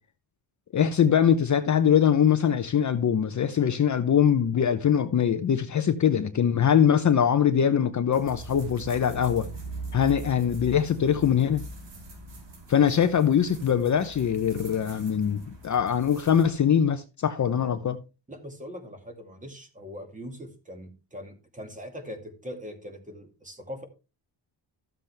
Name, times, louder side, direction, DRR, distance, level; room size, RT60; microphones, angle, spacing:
voice 1, 0.7-9.5 9.9-11.6 12.7-18.0, left 8 dB, 40° left, 0.8 m, -22 dB
sound 1, 8.1-16.5, right 2 dB, 70° right, 4.8 m, -42 dB
voice 2, 18.3-23.8, equal, 15° right, 2.3 m, -41 dB
13.5 x 7.5 x 3.4 m
cardioid pair, 120°, 45 cm